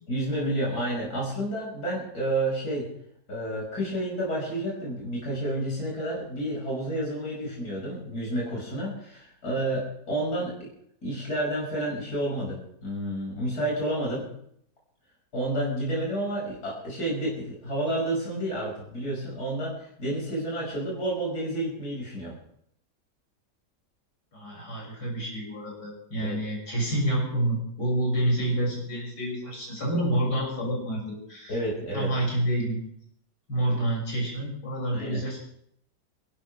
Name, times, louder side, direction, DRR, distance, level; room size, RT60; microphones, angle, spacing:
voice 1, 0.1-2.9 3.3-10.5 11.0-14.3 15.3-22.3 26.2-26.4 31.5-32.1 34.9-35.2, right 1 dB, 65° left, -4 dB, 6.4 m, -30 dB
voice 2, 24.3-31.0 31.3-31.6 31.9-32.8 33.5-35.4, right 1 dB, 85° left, -3 dB, 6.9 m, -28 dB
29.0 x 12.5 x 3.4 m, 0.67 s
omnidirectional pair, 1.8 m